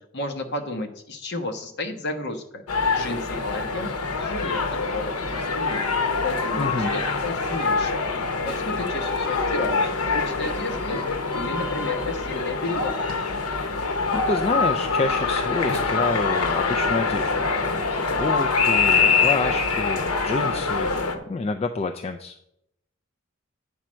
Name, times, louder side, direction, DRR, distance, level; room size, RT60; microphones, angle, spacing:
voice 1, 0.1-2.6 2.9-5.8 6.2-8.1 8.4-11.0 11.3-12.9, left 2 dB, 50° left, 5 dB, 1.0 m, -32 dB
sound 1, 2.7-21.2, left 4 dB, 85° left, 1.0 m, -24 dB
voice 2, 6.6-6.9 14.1-22.4, left 3 dB, 25° left, 5 dB, 0.3 m, -28 dB
9.1 x 4.4 x 6.2 m, 0.80 s
head